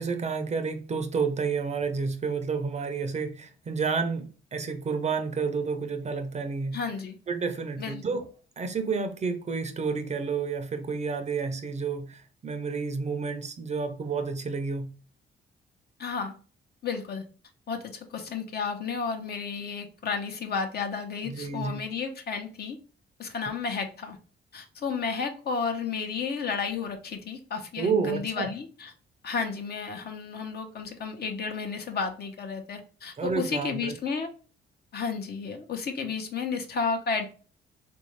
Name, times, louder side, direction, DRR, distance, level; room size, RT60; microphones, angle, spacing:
voice 1, 0.0-6.8 7.3-8.3 8.6-14.9 21.2-21.9 27.8-28.5 33.2-33.9, right 5 dB, 35° right, 0.6 m, -30 dB
voice 2, 6.7-7.1 7.8-8.0 16.0-16.3 16.8-17.2 17.7-22.8 23.2-24.2 24.5-28.9 29.2-34.3 34.9-37.3, left 5 dB, 55° left, 0.9 m, -32 dB
3.5 x 2.6 x 3.1 m
cardioid pair, 90°, 20 cm